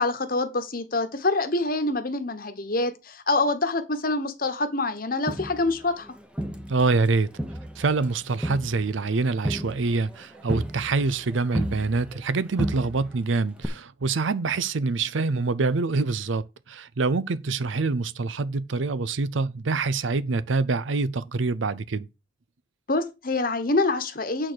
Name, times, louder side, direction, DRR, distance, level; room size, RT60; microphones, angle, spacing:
voice 1, 0.0-6.1 22.9-24.5, left 2 dB, 50° left, 1.2 m, -26 dB
Crowd, 5.3-7.1 7.4-12.3 12.6-13.2 13.6-13.7, right 1 dB, 5° right, 0.9 m, -33 dB
voice 2, 6.7-7.3 7.8-22.1, right 3 dB, 85° right, 0.6 m, -25 dB
8.8 x 4.2 x 6.4 m
head